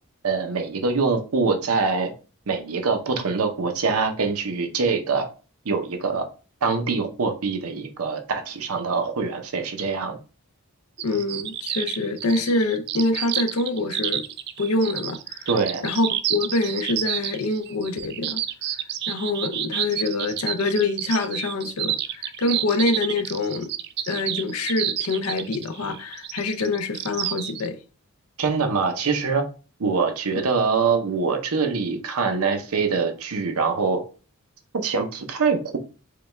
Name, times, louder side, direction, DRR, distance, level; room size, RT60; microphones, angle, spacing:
voice 1, 0.2-2.1 2.5-5.3 5.6-6.3 6.6-10.2 15.5-15.8 28.4-29.5 29.8-34.0 34.7-35.8, right 4 dB, 75° right, 0.7 m, -24 dB
voice 2, 11.0-14.2 14.6-15.5 15.8-18.4 19.1-23.7 24.1-27.8, left 2 dB, 75° left, 0.6 m, -25 dB
sound 1, 11.0-27.7, right 11 dB, 50° right, 0.3 m, -29 dB
4.9 x 2.3 x 3.2 m
head